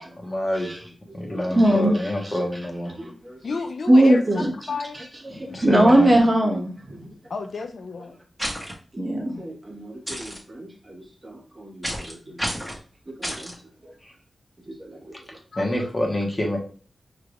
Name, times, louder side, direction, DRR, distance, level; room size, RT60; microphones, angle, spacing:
voice 1, 0.2-0.7 1.1-2.9 5.3-6.1 14.0-14.1 15.6-16.6, left 1 dB, 25° left, 0 dB, 1.3 m, -26 dB
voice 2, 1.3-2.4 2.9-3.4 3.9-4.7 4.9-5.1 5.3-7.0 8.9-12.5 13.1-13.5 14.7-15.1, right 1 dB, 25° right, -1 dB, 1.3 m, -22 dB
voice 3, 3.4-5.0 5.5-5.6 7.3-8.1 12.3-12.4 15.5-15.7, left 4 dB, 70° left, 6 dB, 0.5 m, -32 dB
sound 1, 8.4-8.7 10.1-10.4 11.8-12.1 12.4-12.8 13.2-13.5, equal, ahead, 1.4 m, -30 dB
5.7 x 3.3 x 2.5 m, 0.40 s
wide cardioid pair, 95°, 0 cm